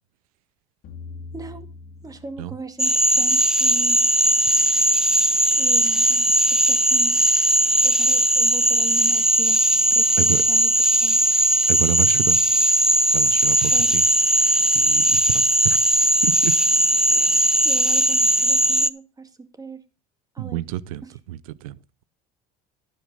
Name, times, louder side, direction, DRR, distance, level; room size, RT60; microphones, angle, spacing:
sound 1, 0.8-3.1, left 4 dB, 60° left, 2.6 m, -41 dB
voice 1, 1.3-1.7 2.0-4.1 5.5-7.2 7.8-9.6 9.9-10.7 11.0-11.2 13.7-13.9 17.1-19.8 20.3-20.6 21.0-21.1, right 4 dB, 20° right, 2.1 m, -39 dB
Cricket / Frog, 2.8-18.9, right 1 dB, 5° right, 0.5 m, -18 dB
voice 2, 11.7-12.4 13.1-14.1 14.3-15.8 16.2-16.5 20.4-22.0, right 14 dB, 80° right, 0.7 m, -29 dB
11.5 x 10.5 x 3.8 m
hypercardioid pair, 75°, 18 cm